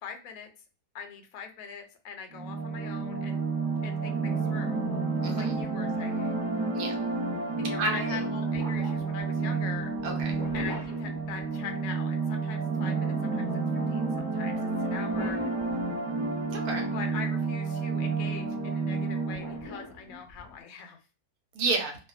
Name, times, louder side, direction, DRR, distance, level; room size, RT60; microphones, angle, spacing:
voice 1, 0.0-0.5 0.9-3.4 3.8-4.9 5.3-6.4 7.6-9.9 10.5-13.5 13.9-15.4 16.9-21.0, left 6 dB, 70° left, 5 dB, 1.0 m, -42 dB
sound 1, 2.3-19.7, right 4 dB, 50° right, 1.1 m, -30 dB
voice 2, 5.2-5.6 6.7-7.0 7.8-8.2 10.0-10.4 16.5-16.9 21.5-22.0, right 3 dB, 75° right, 2 dB, 1.2 m, -30 dB
sound 2, 7.0-7.2 8.5-11.9 14.9-16.3 19.3-20.6, left 1 dB, 20° right, 1.2 m, -43 dB
2.6 x 2.3 x 2.3 m, 0.34 s
omnidirectional pair, 1.7 m